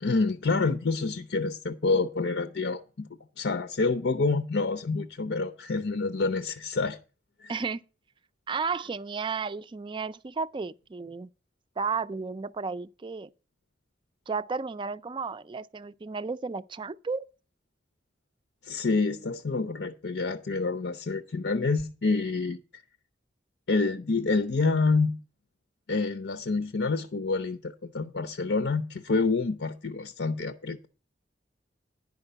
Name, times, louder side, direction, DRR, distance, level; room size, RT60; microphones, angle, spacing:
voice 1, 0.0-3.1 3.4-7.0 7.4-7.5 18.6-22.6 23.7-25.2 25.9-30.9, left 3 dB, 85° left, 0.7 m, -27 dB
voice 2, 7.5-7.8 8.5-11.3 11.8-13.3 14.3-17.3, right 5 dB, 30° right, 0.4 m, -33 dB
10.5 x 5.3 x 6.6 m
head